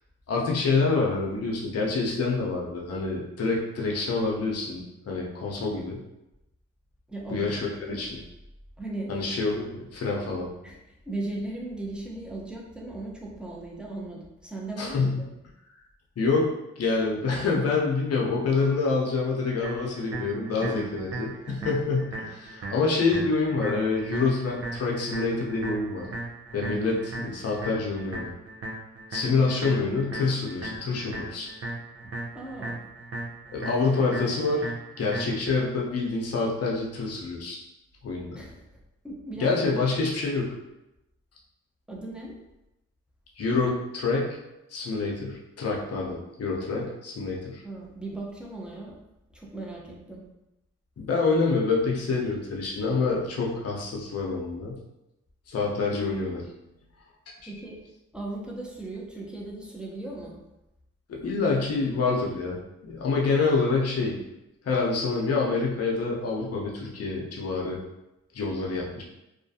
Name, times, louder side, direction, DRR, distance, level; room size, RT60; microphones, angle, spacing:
voice 1, 0.3-6.0 7.3-8.2 9.1-10.5 14.8-15.2 16.2-16.5 16.8-26.1 26.5-28.3 29.1-31.5 33.5-34.7 35.0-37.6 38.0-38.4 39.4-40.5 43.4-44.4 44.7-47.6 51.0-54.7 55.5-56.4 57.3-57.5 61.1-62.6 62.8-64.2 64.6-67.8 68.3-69.0, left 3 dB, 50° left, -2 dB, 0.7 m, -27 dB
voice 2, 7.1-7.5 7.9-8.1 8.8-9.1 10.6-10.8 11.1-15.1 20.5-20.9 21.5-21.7 29.2-29.4 32.3-32.8 38.3-38.6 39.0-39.5 39.9-40.0 41.9-42.3 47.6-48.9 49.3-50.2 57.5-57.8 58.1-60.3, right 2 dB, 5° right, -3 dB, 0.7 m, -37 dB
sound 1, 19.6-35.6, right 2 dB, 45° right, 0.6 m, -37 dB
2.4 x 2.2 x 2.7 m, 0.92 s
supercardioid pair, 50°, 31 cm